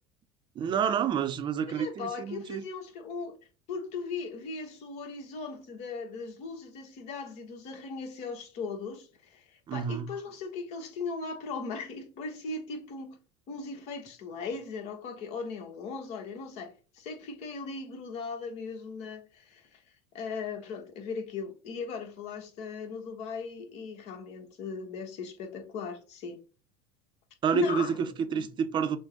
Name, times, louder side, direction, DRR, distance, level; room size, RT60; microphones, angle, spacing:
voice 1, 0.6-2.6 9.7-10.1 27.4-29.0, right 7 dB, 35° right, 0.6 m, -29 dB
voice 2, 1.7-3.4 3.7-13.2 13.5-19.8 20.1-26.4 27.5-28.0 28.3-28.5, left 4 dB, 60° left, 1.2 m, -38 dB
6.1 x 2.2 x 3.8 m
supercardioid pair, 95°, 13 cm